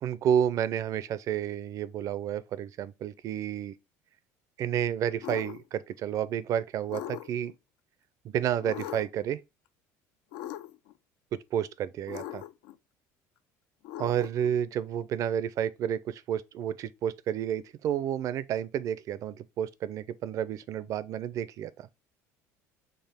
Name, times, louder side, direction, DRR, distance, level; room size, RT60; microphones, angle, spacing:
voice 1, 0.0-3.7 4.6-7.5 8.2-9.4 11.5-12.4 14.0-21.9, right 9 dB, 50° right, 0.4 m, -30 dB
sound 1, 5.2-5.6 6.9-7.5 8.6-9.2 10.3-10.9 12.1-12.7 13.8-14.5, left 13 dB, 80° left, 0.4 m, -40 dB
4.6 x 3.1 x 3.4 m
supercardioid pair, 110°, 7 cm